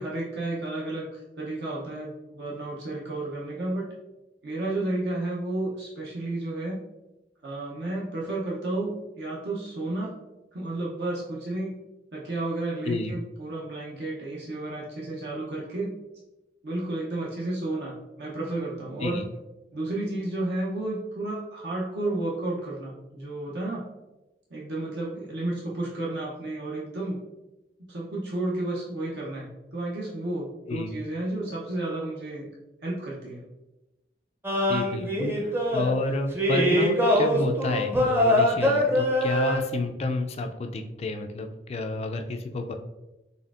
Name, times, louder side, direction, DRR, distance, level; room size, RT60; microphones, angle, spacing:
voice 1, 0.0-3.9 4.4-6.8 7.4-10.2 10.5-11.8 12.1-15.9 16.6-19.2 19.7-23.8 24.5-27.2 27.8-29.5 29.7-32.5 32.8-33.4, right 2 dB, 65° right, -5 dB, 0.7 m, -32 dB
sound 1, 34.4-35.9 36.3-39.6, equal, 15° right, 0.6 m, -23 dB
voice 2, 34.7-42.7, left 2 dB, 35° left, 6 dB, 0.3 m, -30 dB
4.1 x 3.4 x 2.4 m, 1.0 s
head